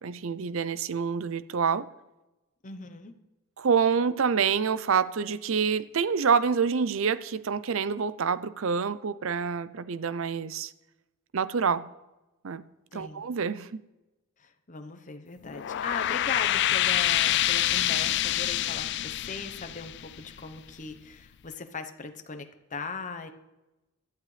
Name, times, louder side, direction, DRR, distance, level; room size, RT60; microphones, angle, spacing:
voice 1, 0.0-1.9 3.6-10.7 11.3-11.9 12.4-12.6 12.9-13.8, right 6 dB, 65° right, 0.5 m, -27 dB
voice 2, 2.6-3.1 12.9-13.3 14.4-23.3, left 4 dB, 35° left, 0.9 m, -39 dB
sound 1, 15.4-20.7, left 13 dB, 55° left, 0.4 m, -27 dB
17.0 x 12.0 x 3.3 m
head